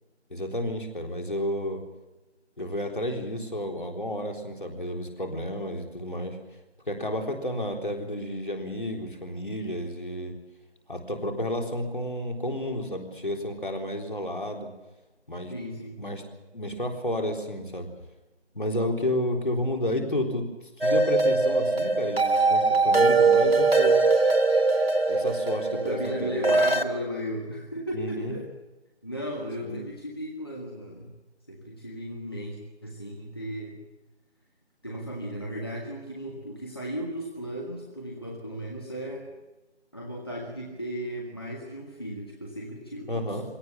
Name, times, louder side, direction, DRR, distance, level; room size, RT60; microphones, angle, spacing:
voice 1, 0.3-1.8 2.6-6.4 6.9-10.3 10.9-14.7 15.3-15.5 16.0-16.2 16.5-17.9 18.6-20.4 20.8-24.0 25.1-26.5 27.9-28.4 29.6-29.8 43.1-43.4, left 1 dB, 45° left, 2 dB, 3.8 m, -31 dB
voice 2, 15.5-16.0 25.7-28.5 29.0-31.1 31.5-33.8 34.8-39.3 39.9-43.4, equal, 20° left, -2 dB, 1.5 m, -35 dB
sound 1, 20.8-26.8, right 3 dB, 60° right, 1.8 m, -22 dB
23.5 x 17.5 x 7.1 m, 1.1 s
figure-of-eight pair, 175°, 34 cm